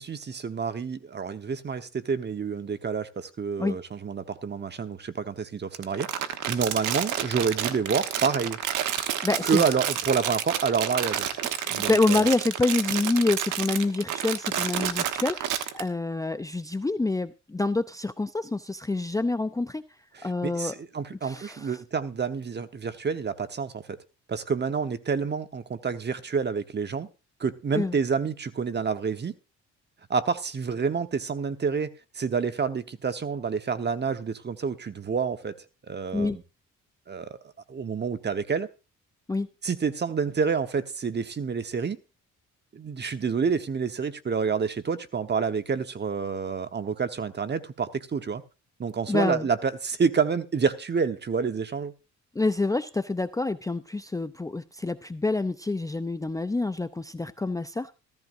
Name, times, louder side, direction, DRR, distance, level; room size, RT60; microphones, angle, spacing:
voice 1, 0.0-8.6 9.4-11.3 11.7-12.3 20.1-24.0 24.3-27.1 27.4-29.3 30.1-35.5 35.9-36.4 37.1-37.3 37.7-38.7 39.6-42.0 42.7-48.4 48.8-51.9, right 5 dB, 35° right, 1.2 m, -28 dB
Crumpling crinkling, 5.7-15.8, right 10 dB, 85° right, 1.2 m, -30 dB
voice 2, 9.2-9.7 11.6-19.8 20.2-20.7 21.2-21.8 27.7-28.0 36.1-36.4 39.3-39.5 49.1-49.4 52.3-58.0, left 2 dB, 10° left, 0.5 m, -27 dB
14.5 x 14.5 x 2.6 m
cardioid pair, 90°, 30 cm